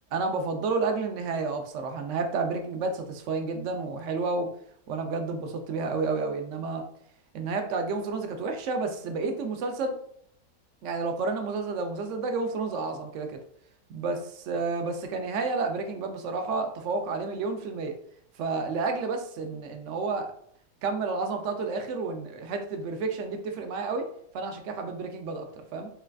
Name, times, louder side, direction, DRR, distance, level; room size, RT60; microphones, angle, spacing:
voice 1, 0.1-4.5 4.9-6.8 7.3-10.0 10.8-13.4 13.9-17.9 18.4-20.3 20.8-24.1 24.3-25.5 25.7-25.9, right 4 dB, 70° right, 5 dB, 0.7 m, -30 dB
5.5 x 2.4 x 2.3 m, 0.65 s
omnidirectional pair, 1.8 m